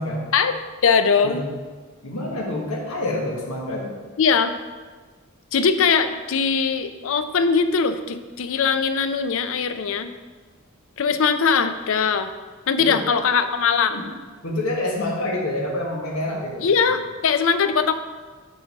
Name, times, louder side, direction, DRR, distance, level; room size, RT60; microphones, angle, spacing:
voice 1, 0.3-1.4 4.2-4.5 5.5-10.1 11.0-12.3 12.7-14.0 16.6-17.9, left 5 dB, 65° left, 10 dB, 0.5 m, -21 dB
voice 2, 2.0-4.0 12.8-13.0 13.9-14.1 14.4-17.0, left 1 dB, 90° left, -2 dB, 1.2 m, -27 dB
7.7 x 3.9 x 5.3 m, 1.4 s
head